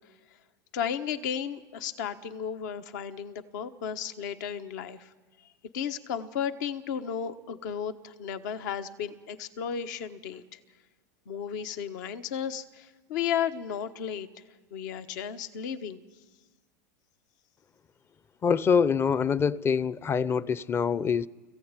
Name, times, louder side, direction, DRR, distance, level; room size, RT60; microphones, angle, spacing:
voice 1, 0.7-5.1 5.4-5.5 5.7-10.6 11.3-14.4 14.7-16.0, left 8 dB, 70° left, 1.2 m, -34 dB
voice 2, 18.4-21.3, left 6 dB, 25° left, 0.6 m, -25 dB
20.5 x 15.5 x 9.0 m
hypercardioid pair, 110°, 10 cm